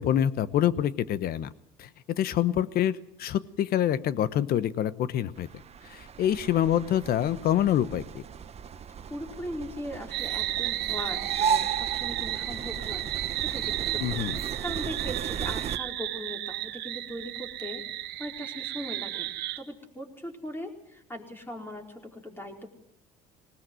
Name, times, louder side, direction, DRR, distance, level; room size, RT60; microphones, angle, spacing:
voice 1, 0.0-1.5 1.8-1.9 2.2-5.5 5.9-8.2 14.0-14.3, left 11 dB, 55° left, 17 dB, 1.1 m, -26 dB
sound 1, 5.4-15.8, right 7 dB, 35° right, 1.0 m, -35 dB
voice 2, 9.1-13.1 13.4-22.7, equal, 10° left, 2 dB, 4.6 m, -40 dB
sound 2, 10.1-19.6, right 15 dB, 65° right, 1.5 m, -33 dB
19.5 x 18.5 x 7.8 m, 0.75 s
supercardioid pair, 90°, 19 cm